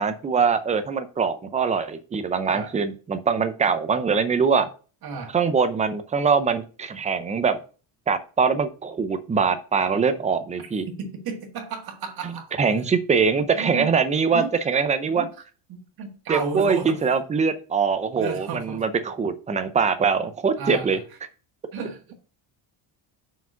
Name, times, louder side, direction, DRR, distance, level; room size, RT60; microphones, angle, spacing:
voice 1, 0.0-4.7 5.3-7.6 8.1-10.9 12.2-12.3 12.6-15.3 16.3-21.0, right 5 dB, 15° right, 0.4 m, -23 dB
voice 2, 5.0-5.3 11.0-12.5 13.5-14.0 14.3-14.5 15.1-15.3 15.7-17.0 18.1-18.8 20.6-21.0 21.7-22.1, right 5 dB, 45° right, 1.7 m, -33 dB
5.9 x 4.9 x 5.5 m
cardioid pair, 175°, 48 cm